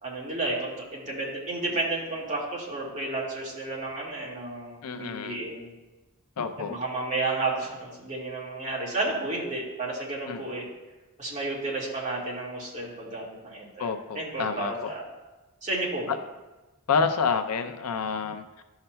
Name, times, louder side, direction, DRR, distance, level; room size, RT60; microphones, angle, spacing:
voice 1, 0.0-5.7 6.6-10.7 11.2-15.0 15.6-16.1, right 2 dB, 35° right, -5 dB, 1.9 m, -32 dB
voice 2, 4.8-5.4 6.4-6.8 10.3-10.4 13.8-14.9 16.1-16.2 16.9-18.6, left 5 dB, 85° left, 7 dB, 0.5 m, -28 dB
12.0 x 5.7 x 2.2 m, 1.1 s
head